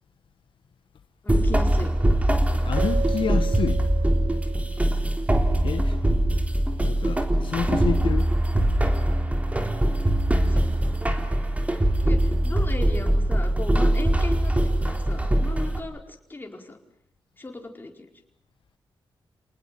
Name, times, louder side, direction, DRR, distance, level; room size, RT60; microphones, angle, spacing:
voice 1, 1.2-1.9 12.0-16.8 17.4-18.1, left 2 dB, 25° left, 4.7 m, -36 dB
sound 1, 1.3-15.8, right 1 dB, 15° right, 3.5 m, -22 dB
voice 2, 2.6-3.8 5.6-6.0 6.8-8.3, left 7 dB, 75° left, 1.6 m, -29 dB
Keyboard (musical), 2.8-5.2, right 7 dB, 80° right, 1.5 m, -35 dB
30.0 x 19.5 x 7.7 m
cardioid pair, 100°, 9 cm